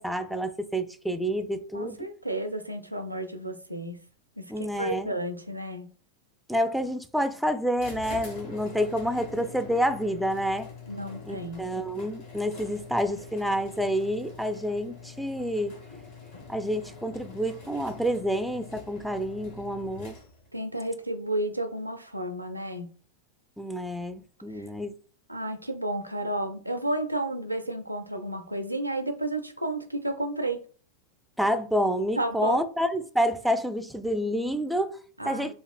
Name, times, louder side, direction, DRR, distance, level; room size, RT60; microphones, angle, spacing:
voice 1, 0.0-2.0 4.5-5.1 6.5-10.7 11.3-15.8 16.5-20.1 23.6-24.9 31.4-35.0 35.2-35.5, equal, ahead, 0.4 m, -28 dB
voice 2, 1.7-4.0 4.4-4.5 4.8-5.9 10.9-11.6 20.5-22.9 24.5-24.7 25.3-30.6 32.2-32.6 35.2-35.5, right 1 dB, 85° right, 0.5 m, -32 dB
sound 1, 7.8-20.6, left 4 dB, 50° left, 1.1 m, -44 dB
4.9 x 2.3 x 2.4 m
figure-of-eight pair, 90°, 0 cm